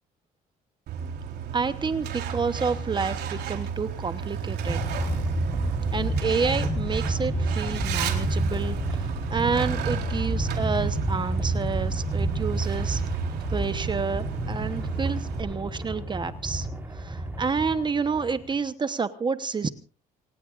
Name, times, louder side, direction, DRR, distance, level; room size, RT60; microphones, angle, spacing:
Truck, 0.9-15.4, right 6 dB, 75° right, 3.9 m, -33 dB
voice 1, 1.5-4.8 5.9-13.0 13.5-19.7, right 5 dB, 25° right, 12 dB, 1.0 m, -29 dB
sound 1, 4.7-18.6, right 1 dB, 10° right, 4.7 m, -29 dB
28.5 x 18.5 x 2.5 m, 0.37 s
cardioid pair, 110°, 17 cm